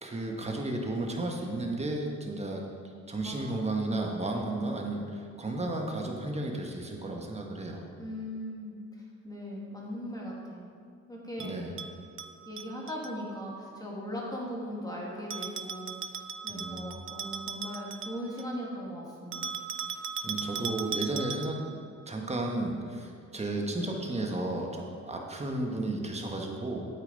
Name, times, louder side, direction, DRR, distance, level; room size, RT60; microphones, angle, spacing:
voice 1, 0.0-2.6 3.1-7.8 11.4-11.7 16.5-16.9 20.2-21.6 22.1-26.9, right 2 dB, 20° right, 1 dB, 1.4 m, -33 dB
voice 2, 3.2-3.6 8.0-10.7 11.1-11.5 12.5-16.2 16.4-19.6 23.8-24.0, equal, 10° left, -4 dB, 2.2 m, -39 dB
Bell, 11.4-13.1 15.3-18.5 19.3-21.7, right 6 dB, 45° right, 0.5 m, -38 dB
9.1 x 8.3 x 4.1 m, 2.3 s
cardioid pair, 90°, 30 cm